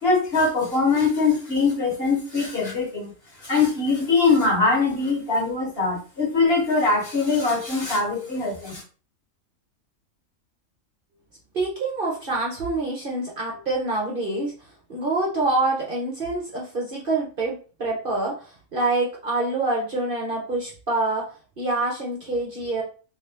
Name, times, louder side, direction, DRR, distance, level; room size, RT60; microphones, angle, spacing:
voice 1, 0.0-3.1 3.4-8.8, left 4 dB, 45° left, -2 dB, 1.2 m, -22 dB
voice 2, 11.5-14.5 14.9-22.8, right 2 dB, 45° right, -3 dB, 0.8 m, -26 dB
2.9 x 2.6 x 3.3 m, 0.37 s
omnidirectional pair, 1.5 m